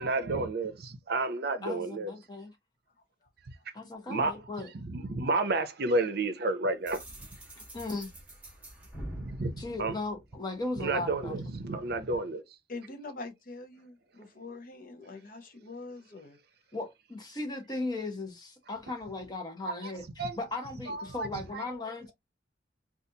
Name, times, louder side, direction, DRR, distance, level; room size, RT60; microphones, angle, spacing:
voice 1, 0.0-2.1 4.1-4.3 4.7-7.0 9.2-10.0 10.8-12.4 19.8-19.9 20.2-20.4 20.9-21.3 21.5-21.6, right 2 dB, 55° right, 0.6 m, -31 dB
voice 2, 1.6-2.5 3.7-4.7 7.6-8.1 9.6-11.3 16.7-20.0 20.4-22.1, left 2 dB, 20° left, 0.9 m, -37 dB
sound 1, 6.9-10.7, right 1 dB, 10° right, 1.2 m, -45 dB
voice 3, 12.7-16.4, left 3 dB, 50° left, 0.7 m, -44 dB
4.0 x 2.4 x 2.8 m
head